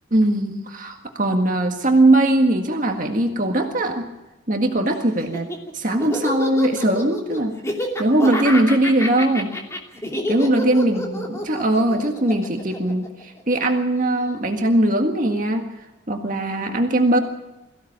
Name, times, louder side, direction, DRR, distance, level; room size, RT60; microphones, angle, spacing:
voice 1, 0.1-4.1 4.5-5.5 5.7-7.5 8.0-9.6 10.3-15.7 16.1-17.2, right 1 dB, 40° right, 3 dB, 1.8 m, -20 dB
Laughter, 5.2-13.6, left 1 dB, 15° left, 2.8 m, -28 dB
22.5 x 16.0 x 8.7 m, 1.0 s
head